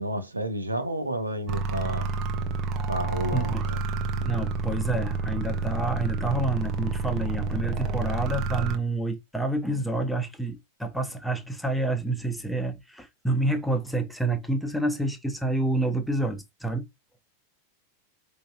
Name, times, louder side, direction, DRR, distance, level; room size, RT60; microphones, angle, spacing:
voice 1, 0.0-2.1 2.9-3.8, right 1 dB, 85° right, 0.7 m, -31 dB
sound 1, 1.5-8.8, right 4 dB, 35° right, 0.6 m, -29 dB
voice 2, 3.3-3.6 4.2-16.9, right 2 dB, ahead, 0.6 m, -28 dB
4.7 x 2.6 x 2.2 m
figure-of-eight pair, 90°, 0 cm